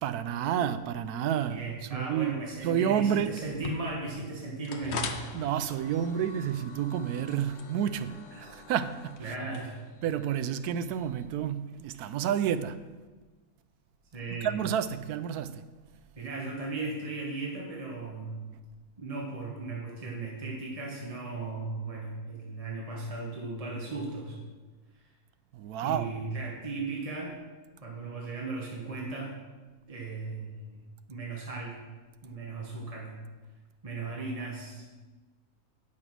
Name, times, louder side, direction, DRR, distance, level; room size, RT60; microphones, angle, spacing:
voice 1, 0.0-1.6 1.9-2.4 2.6-3.3 5.3-9.3 10.0-12.8 14.4-15.6 25.5-26.1, right 9 dB, 90° right, 1.1 m, -30 dB
voice 2, 1.5-5.1 8.3-8.5 9.2-9.8 14.1-14.5 16.2-18.4 19.0-24.4 25.8-27.4 27.8-29.3 29.9-30.8 31.1-31.8 32.2-33.2 33.8-34.8, right 3 dB, 25° right, 1.3 m, -37 dB
sound 1, 3.4-11.3, left 5 dB, 55° left, 0.9 m, -42 dB
9.5 x 6.0 x 6.0 m
omnidirectional pair, 1.6 m